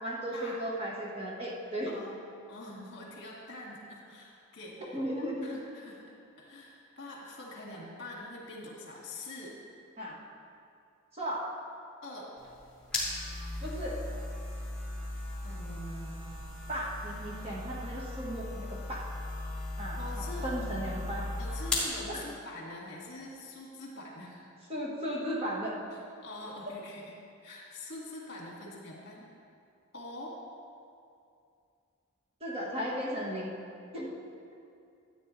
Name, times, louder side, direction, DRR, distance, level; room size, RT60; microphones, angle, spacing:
voice 1, 0.0-2.0 4.9-5.6 10.0-10.2 11.1-11.5 13.6-14.0 16.7-19.0 19.8-20.0 20.4-21.3 22.1-22.2 24.7-25.8 26.6-26.7 32.4-33.5 33.9-34.1, equal, 30° right, -4 dB, 1.4 m, -35 dB
voice 2, 1.9-2.2 2.5-4.8 5.4-6.0 6.4-9.6 12.0-12.3 15.4-16.3 20.0-20.5 21.4-24.5 25.9-27.1 27.4-29.3 29.9-30.4, left 2 dB, 55° left, -3 dB, 2.1 m, -44 dB
sound 1, 12.4-22.0, left 2 dB, 5° left, 2.1 m, -37 dB
13.5 x 8.9 x 3.2 m, 2.4 s
head